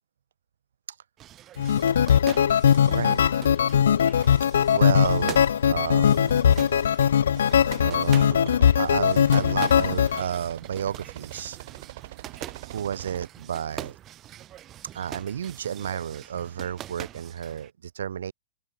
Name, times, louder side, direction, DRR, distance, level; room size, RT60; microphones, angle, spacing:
sound 1, 1.2-17.7, right 12 dB, 20° right, 3.7 m, -44 dB
sound 2, 1.6-10.2, left 8 dB, 80° left, 0.4 m, -20 dB
voice 1, 2.9-3.2 4.7-5.4 5.7-6.5 7.8-11.6 12.7-14.0 14.9-18.3, right 9 dB, 80° right, 3.1 m, -31 dB
sound 3, 5.2-13.3, right 16 dB, 45° right, 7.6 m, -45 dB
open air
hypercardioid pair, 160°, 0 cm